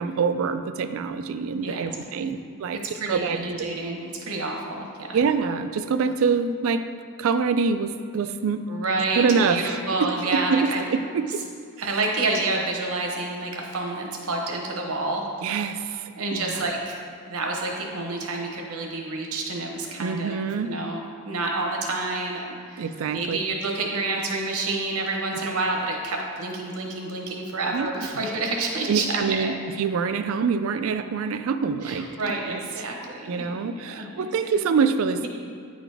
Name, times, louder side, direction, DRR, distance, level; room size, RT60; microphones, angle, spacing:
voice 1, 0.0-2.8 3.1-3.4 5.1-6.8 7.2-8.6 9.2-11.4 11.8-12.0 15.4-16.6 20.0-20.7 22.8-23.4 27.7-28.2 28.9-32.6 33.3-35.3, right 5 dB, 70° right, 10 dB, 0.3 m, -25 dB
voice 2, 2.7-5.2 8.7-10.8 11.8-15.2 16.2-20.4 20.7-21.0 21.2-29.5 31.8-34.3, right 2 dB, 85° right, 1 dB, 1.0 m, -29 dB
9.0 x 4.0 x 3.4 m, 2.2 s
head